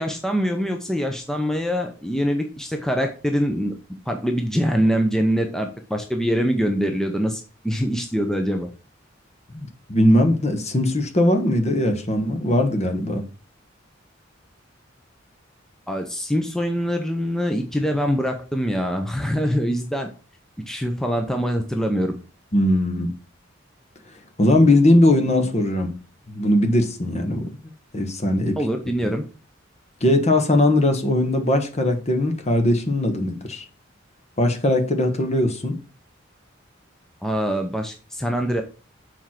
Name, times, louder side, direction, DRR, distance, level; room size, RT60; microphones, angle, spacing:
voice 1, 0.0-3.7 4.1-8.7 15.9-20.1 20.7-22.1 28.6-29.2 37.2-38.6, equal, 5° left, 0.7 m, -24 dB
voice 2, 9.5-13.2 22.5-23.1 24.4-26.0 26.3-27.6 27.9-28.6 30.0-33.6 34.4-35.8, left 1 dB, 35° left, 1.2 m, -20 dB
7.2 x 4.5 x 5.8 m
head